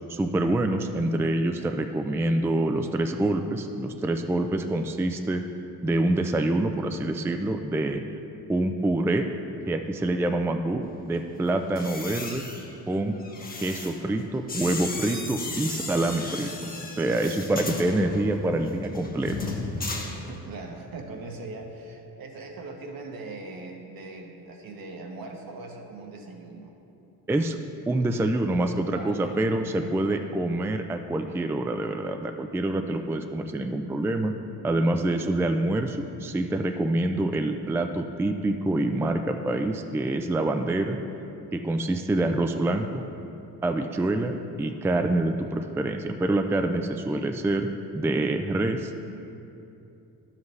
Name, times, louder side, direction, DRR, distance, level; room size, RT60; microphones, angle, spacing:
voice 1, 0.1-5.4 5.8-8.0 8.5-9.3 9.7-12.4 12.9-13.2 13.6-16.5 17.0-19.4 27.3-27.6 27.9-34.3 34.6-41.0 41.5-43.0 43.6-47.7 47.9-48.9, right 2 dB, 5° right, 6 dB, 0.4 m, -26 dB
sound 1, 11.6-20.7 21.0-21.3, left 3 dB, 25° left, 1.0 m, -35 dB
voice 2, 20.3-26.7 28.9-29.9 33.4-33.5, right 3 dB, 65° right, 2 dB, 1.2 m, -40 dB
11.0 x 7.3 x 3.2 m, 2.8 s
cardioid pair, 75°, 38 cm